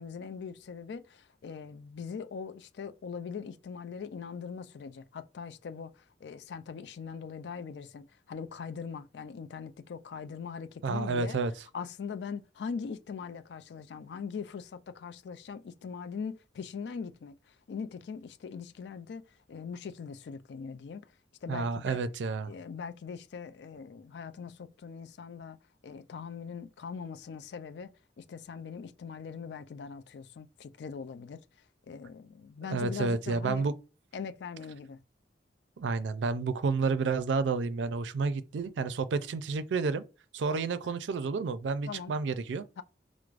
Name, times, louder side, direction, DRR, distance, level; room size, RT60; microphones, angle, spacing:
voice 1, 0.0-11.4 11.7-19.2 19.5-21.1 21.4-22.0 22.5-25.6 25.8-31.4 31.9-33.7 34.1-35.0 40.8-41.0 41.9-42.2 42.8-42.9, left 6 dB, 65° left, 0.4 m, -41 dB
voice 2, 10.8-11.5 21.5-22.5 32.7-33.7 35.8-40.0 40.3-42.7, right 4 dB, 85° right, 0.4 m, -30 dB
4.6 x 2.0 x 2.4 m
head